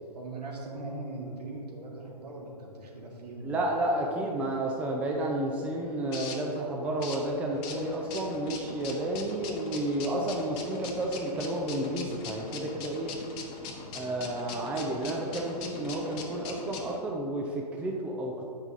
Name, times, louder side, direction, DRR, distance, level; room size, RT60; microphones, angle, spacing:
voice 1, 0.1-3.9 13.5-14.1, right 2 dB, 70° right, -2 dB, 1.7 m, -41 dB
voice 2, 3.4-13.1 13.9-18.4, right 1 dB, 5° right, -1 dB, 0.4 m, -31 dB
sound 1, 5.6-17.0, left 4 dB, 25° left, 0.8 m, -41 dB
8.0 x 5.4 x 3.6 m, 2.5 s
figure-of-eight pair, 125°, 21 cm